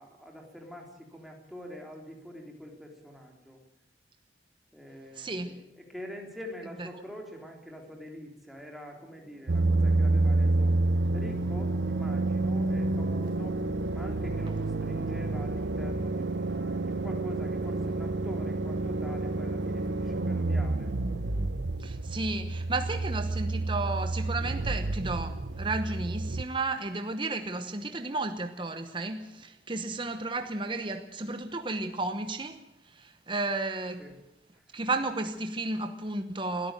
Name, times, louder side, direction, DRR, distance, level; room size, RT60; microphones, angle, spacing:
voice 1, 0.0-3.6 4.7-10.8 11.1-13.6 13.9-20.9 34.0-34.2 34.5-34.8, equal, ahead, 3.6 m, -45 dB
voice 2, 5.2-5.6 21.8-32.6 33.0-34.0 34.7-36.7, right 2 dB, 25° right, 1.0 m, -33 dB
sound 1, 8.9-21.5, right 1 dB, 55° right, 3.1 m, -50 dB
sound 2, 9.5-26.4, right 2 dB, 80° right, 0.8 m, -29 dB
21.0 x 13.5 x 9.2 m
head